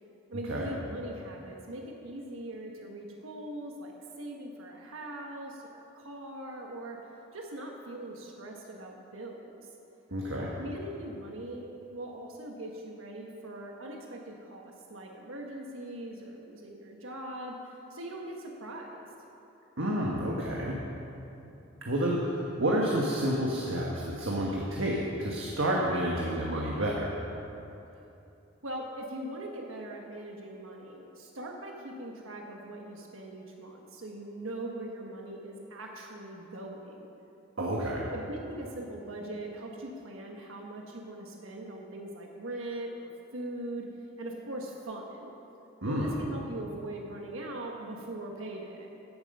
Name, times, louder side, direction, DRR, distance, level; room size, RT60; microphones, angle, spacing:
voice 1, 0.3-7.0 7.3-9.7 10.6-14.6 14.9-19.1 28.6-37.1 38.1-43.8 44.2-45.3 45.8-48.9, right 1 dB, 90° right, 0 dB, 1.3 m, -41 dB
voice 2, 10.1-10.5 19.8-20.8 21.8-27.1 37.6-38.1 45.8-46.2, right 1 dB, 70° right, -3 dB, 1.4 m, -29 dB
14.5 x 7.6 x 5.4 m, 2.8 s
head